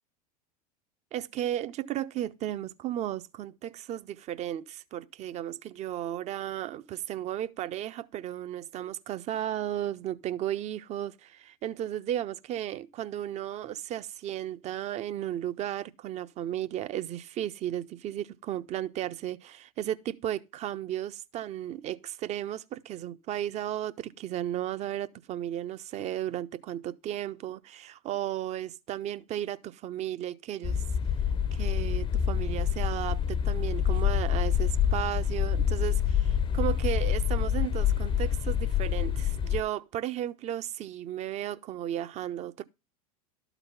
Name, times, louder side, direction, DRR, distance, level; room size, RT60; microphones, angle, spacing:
voice 1, 1.1-30.8 31.5-42.6, right 12 dB, 35° right, 0.6 m, -34 dB
sound 1, 30.6-39.6, left 9 dB, 25° left, 0.6 m, -27 dB
12.0 x 4.0 x 5.5 m
hypercardioid pair, 90°, 20 cm